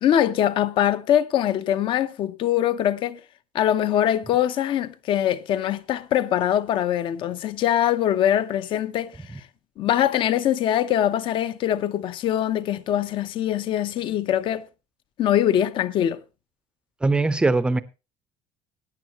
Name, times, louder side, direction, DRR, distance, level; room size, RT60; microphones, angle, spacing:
voice 1, 0.0-3.2 3.5-9.4 9.8-14.7 15.2-16.2, left 11 dB, 45° left, 0.8 m, -23 dB
voice 2, 17.0-17.8, right 3 dB, 10° right, 0.6 m, -20 dB
17.0 x 9.9 x 2.9 m
cardioid pair, 165°, 12 cm